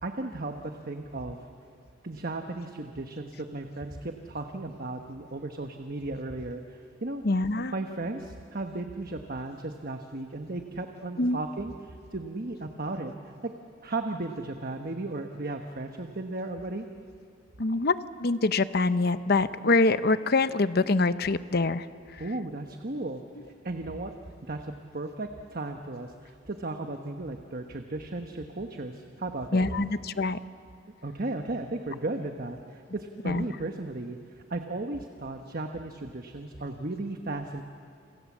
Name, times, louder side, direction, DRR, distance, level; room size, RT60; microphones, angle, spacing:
voice 1, 0.0-1.4 2.0-7.2 7.7-13.1 13.4-13.5 13.8-16.9 22.2-23.2 23.6-24.1 24.4-29.6 31.0-34.2 34.5-37.6, right 2 dB, 45° right, 5 dB, 1.2 m, -35 dB
voice 2, 7.2-7.7 11.2-11.4 17.6-21.8 22.2-22.4 29.5-30.4 33.2-33.5, left 3 dB, 50° left, 12 dB, 0.8 m, -25 dB
29.0 x 26.0 x 7.4 m, 2.3 s
head